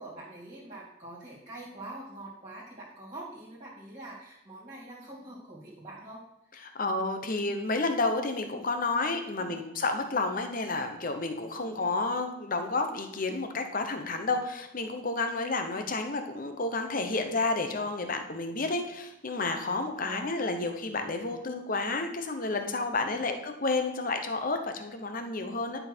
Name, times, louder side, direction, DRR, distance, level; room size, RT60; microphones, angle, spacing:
voice 1, 0.0-6.2 6.7-6.8 9.4-9.6 11.5-11.8 20.0-20.6 23.0-23.2, right 2 dB, 30° right, -6 dB, 2.3 m, -45 dB
voice 2, 6.6-25.8, left 3 dB, 40° left, 6 dB, 0.9 m, -31 dB
11.0 x 5.5 x 4.4 m, 0.86 s
head